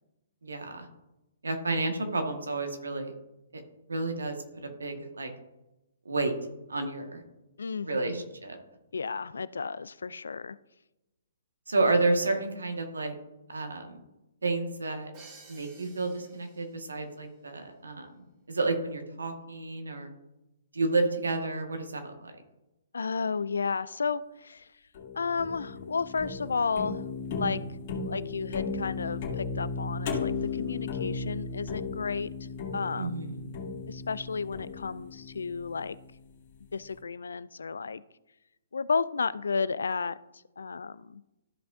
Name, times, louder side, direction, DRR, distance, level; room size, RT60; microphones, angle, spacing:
voice 1, 0.4-0.8 1.4-3.1 3.9-4.4 4.6-5.3 6.0-6.3 6.7-7.2 7.8-8.6 11.7-13.1 13.5-14.0 14.4-15.1 15.5-18.1 18.5-20.1 20.7-22.3 33.0-33.4, right 3 dB, 80° right, 4 dB, 1.6 m, -30 dB
voice 2, 7.6-8.3 8.9-10.6 22.9-24.7 25.1-27.6 28.0-33.1 33.9-36.0 36.7-38.0 38.7-40.2 40.6-41.2, left 5 dB, 75° left, 18 dB, 0.3 m, -32 dB
Crash cymbal, 15.1-17.0, right 3 dB, 30° right, 2.2 m, -53 dB
sound 1, 24.9-36.1, left 4 dB, 45° left, 2.3 m, -36 dB
13.5 x 5.4 x 2.6 m, 0.96 s
figure-of-eight pair, 130°, 0 cm